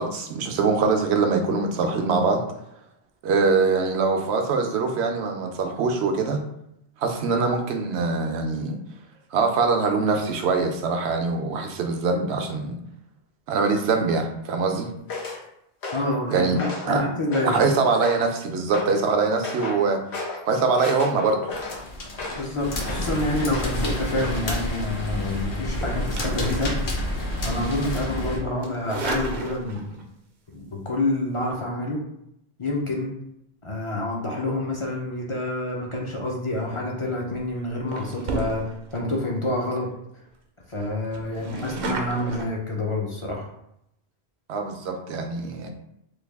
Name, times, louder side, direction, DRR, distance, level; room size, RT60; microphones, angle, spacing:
voice 1, 0.0-2.4 3.2-6.4 7.0-8.8 9.3-12.8 13.5-14.9 16.3-16.6 16.9-17.0 17.4-20.0 20.5-21.4 44.5-45.7, right 4 dB, 80° right, 4 dB, 0.8 m, -23 dB
sound 1, 15.1-15.4 15.8-16.2 16.6-16.9 17.3-17.7 18.0-18.4 18.7-19.0 19.4-19.8 20.1-20.4 20.8-22.5 22.8-23.1 23.5-23.9 24.2-24.4, left 3 dB, 85° left, 1.1 m, -33 dB
voice 2, 15.9-17.6 22.3-26.7 27.4-30.0 30.5-32.0 32.6-33.1 33.6-39.9 40.7-43.5, left 2 dB, 40° left, -1 dB, 0.5 m, -28 dB
sound 2, 21.5-28.4, left 1 dB, 55° left, 0.8 m, -29 dB
sound 3, 25.7-27.3 27.7-28.0 28.6-30.0 31.3-31.5 36.6-36.8 37.3-37.5 37.9-39.0 39.5-39.6 39.8-39.9 40.3-40.4 40.7-42.5, right 3 dB, 55° right, 0.5 m, -33 dB
3.2 x 2.3 x 3.4 m, 0.79 s
omnidirectional pair, 1.1 m